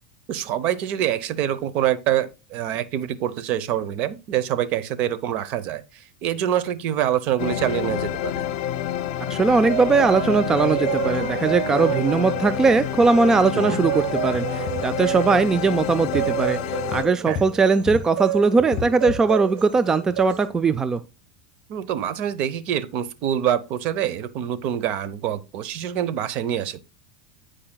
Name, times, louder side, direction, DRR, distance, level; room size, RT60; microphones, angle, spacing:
voice 1, 0.3-8.4 13.5-13.8 17.3-17.4 21.7-26.8, right 10 dB, 50° right, 0.8 m, -25 dB
sound 1, 7.4-17.0, left 11 dB, 60° left, 0.8 m, -28 dB
voice 2, 9.3-21.0, right 4 dB, 15° right, 0.4 m, -20 dB
sound 2, 9.7-20.5, right 13 dB, 65° right, 1.4 m, -30 dB
sound 3, 13.0-13.1 13.4-13.5 14.3-15.1 15.6-15.8 16.2-16.3 16.9-18.1 18.6-19.4 19.8-19.9 20.1-20.3 21.0-21.1, left 6 dB, 30° left, 1.7 m, -34 dB
14.5 x 4.9 x 2.3 m
supercardioid pair, 125°, 3 cm